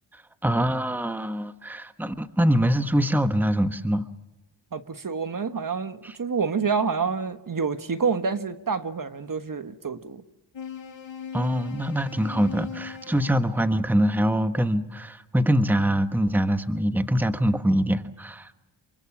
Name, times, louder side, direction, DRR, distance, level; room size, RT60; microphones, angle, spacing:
voice 1, 0.1-4.1 6.0-6.1 11.3-18.5, equal, 5° right, 9 dB, 1.2 m, -24 dB
voice 2, 4.7-10.2, right 5 dB, 45° right, 10 dB, 1.4 m, -28 dB
sound 1, 10.5-13.5, left 7 dB, 70° left, 5.6 m, -38 dB
28.0 x 24.0 x 7.3 m, 1.0 s
wide cardioid pair, 85°, 46 cm